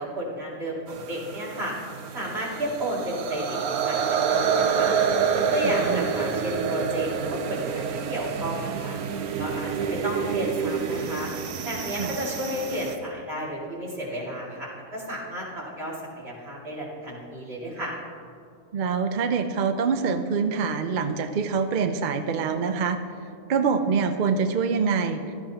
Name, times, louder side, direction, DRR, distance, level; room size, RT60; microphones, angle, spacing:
voice 1, 0.0-1.7 2.1-4.9 5.3-9.0 9.4-11.3 11.6-17.9, right 1 dB, 45° right, -5 dB, 2.9 m, -32 dB
sound 1, 0.9-13.0, right 6 dB, 85° right, 1.2 m, -28 dB
voice 2, 5.6-6.1 11.9-12.2 18.7-23.0 23.5-25.3, right 5 dB, 60° right, 7 dB, 0.5 m, -25 dB
16.0 x 12.5 x 2.9 m, 2.3 s
omnidirectional pair, 1.5 m